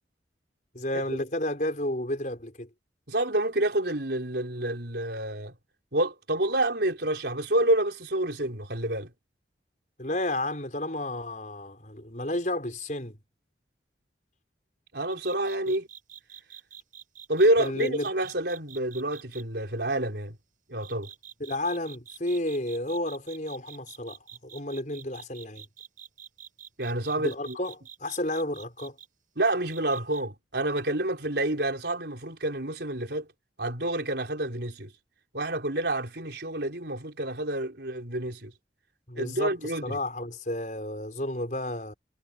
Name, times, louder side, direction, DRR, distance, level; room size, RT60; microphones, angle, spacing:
voice 1, 0.7-2.7 10.0-13.2 17.6-18.1 21.4-25.6 27.2-27.7 28.0-29.0 39.1-39.5 39.8-41.9, left 1 dB, 45° left, 5.1 m, -31 dB
voice 2, 3.1-5.5 5.9-9.1 14.9-15.9 17.3-20.4 20.7-21.1 26.8-27.6 29.4-33.3 33.6-34.9 35.3-38.5 39.2-40.0, right 1 dB, 65° right, 4.3 m, -28 dB
sound 1, 15.1-19.4 20.8-29.1 29.7-30.2, right 9 dB, 45° right, 6.0 m, -47 dB
head